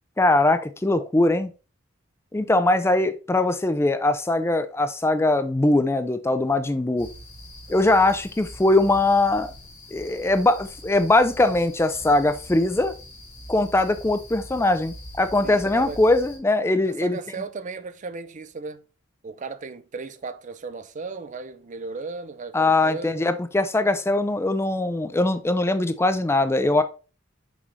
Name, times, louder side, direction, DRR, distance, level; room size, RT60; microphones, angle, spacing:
voice 1, 0.2-1.5 2.3-7.1 7.7-9.5 9.9-12.9 13.5-17.2 22.5-26.8, left 2 dB, 15° left, 0.4 m, -21 dB
sound 1, 7.0-16.4, left 1 dB, 40° left, 2.8 m, -43 dB
voice 2, 15.4-16.0 16.8-18.8 19.2-23.2, right 4 dB, 40° right, 0.5 m, -36 dB
6.1 x 5.4 x 3.1 m
head